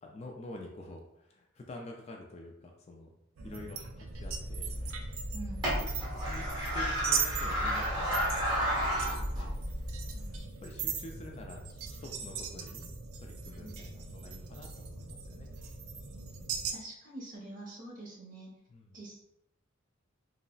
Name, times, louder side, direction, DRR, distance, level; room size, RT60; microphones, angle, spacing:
voice 1, 0.0-3.2 3.4-4.7 5.7-9.6 10.6-12.9 13.2-15.5 18.7-19.0, left 2 dB, 30° left, 1 dB, 0.3 m, -48 dB
sound 1, 3.4-16.7, right 6 dB, 85° right, 0.4 m, -39 dB
sound 2, 4.1-10.4, equal, 20° right, 1.1 m, -33 dB
voice 2, 5.3-5.7 10.1-10.4 13.6-13.8 16.1-18.5 18.9-19.2, right 2 dB, 40° right, -3 dB, 0.8 m, -46 dB
3.8 x 2.0 x 2.3 m, 0.79 s
head